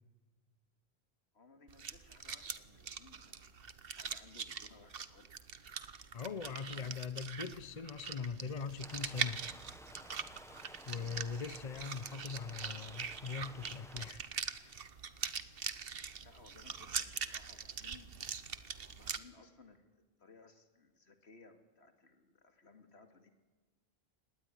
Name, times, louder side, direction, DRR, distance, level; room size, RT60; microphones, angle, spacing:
voice 1, 1.3-3.6 3.9-5.4 6.5-9.1 16.2-18.5 18.9-23.3, left 4 dB, 85° left, 2.4 m, -61 dB
sound 1, 1.7-19.2, right 6 dB, 65° right, 1.2 m, -43 dB
voice 2, 6.1-9.4 10.9-14.2 14.5-14.8, left 5 dB, 40° left, 1.0 m, -41 dB
Stream, 8.8-14.1, equal, 5° left, 1.2 m, -55 dB
25.0 x 19.5 x 9.9 m
omnidirectional pair, 1.1 m